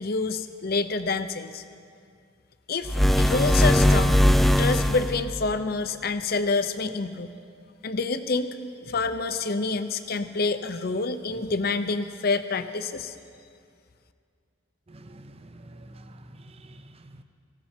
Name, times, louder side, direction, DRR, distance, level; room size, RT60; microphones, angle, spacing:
voice 1, 0.0-1.6 2.7-4.2 4.6-7.4 7.8-13.1, left 3 dB, 55° left, 11 dB, 0.7 m, -27 dB
sound 1, 2.9-5.3, left 1 dB, ahead, 0.3 m, -20 dB
voice 2, 14.9-17.2, right 1 dB, 30° right, 8 dB, 0.7 m, -47 dB
18.5 x 15.5 x 4.4 m, 2.3 s
head